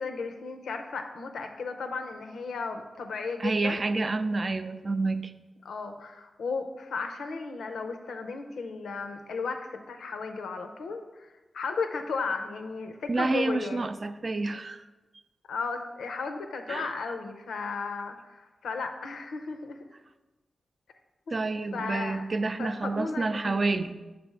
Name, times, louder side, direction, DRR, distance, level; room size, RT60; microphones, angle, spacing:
voice 1, 0.0-3.8 5.6-11.3 11.5-13.9 15.5-19.8 21.3-22.2 22.6-23.8, left 4 dB, 85° left, 6 dB, 0.6 m, -35 dB
voice 2, 3.4-5.3 13.1-14.8 16.7-16.9 21.3-24.0, right 3 dB, 50° right, 10 dB, 0.4 m, -29 dB
6.7 x 3.4 x 5.6 m, 1.1 s
cardioid pair, 45°, 0 cm